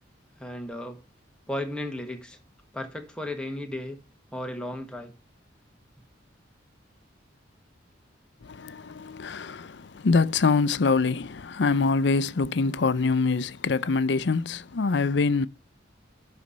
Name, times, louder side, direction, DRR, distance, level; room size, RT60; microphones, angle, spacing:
voice 1, 0.4-1.0 1.5-2.4 2.7-4.0 4.3-5.1, left 1 dB, 5° left, 1.3 m, -34 dB
voice 2, 8.4-15.5, left 4 dB, 60° left, 0.5 m, -24 dB
11.5 x 4.2 x 6.2 m
head